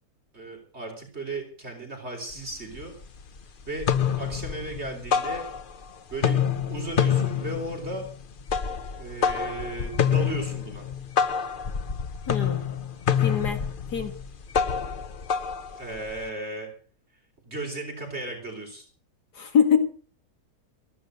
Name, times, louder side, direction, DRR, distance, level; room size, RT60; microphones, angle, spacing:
voice 1, 0.3-2.9 3.7-3.9 4.1-5.4 6.1-6.4 6.7-8.0 9.0-10.9 15.7-16.7 17.5-18.8, right 2 dB, 40° right, 1 dB, 4.4 m, -35 dB
sound 1, 2.3-2.4 2.7-3.4 3.7-5.9 6.1-16.3, left 7 dB, 45° left, 0.7 m, -27 dB
voice 2, 12.3-12.6 13.2-13.6 13.9-14.1 19.3-19.8, left 7 dB, 75° left, 8 dB, 2.4 m, -23 dB
15.0 x 11.5 x 6.5 m, 0.41 s
omnidirectional pair, 1.8 m